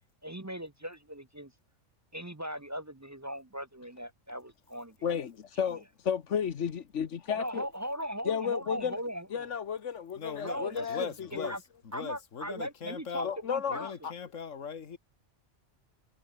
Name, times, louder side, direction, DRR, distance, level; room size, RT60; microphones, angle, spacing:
voice 1, 0.2-1.5 2.1-5.0 5.7-5.8 7.4-9.5 10.4-11.1 11.4-11.6 11.9-13.9, equal, 15° right, 0.6 m, -38 dB
voice 2, 5.0-7.7 8.2-9.0 9.3-11.1 11.4-11.5 13.2-14.1, left 7 dB, 70° left, 1.4 m, -33 dB
voice 3, 10.1-11.6 11.8-13.3 13.7-15.0, left 6 dB, 85° left, 1.9 m, -40 dB
omnidirectional pair, 1.3 m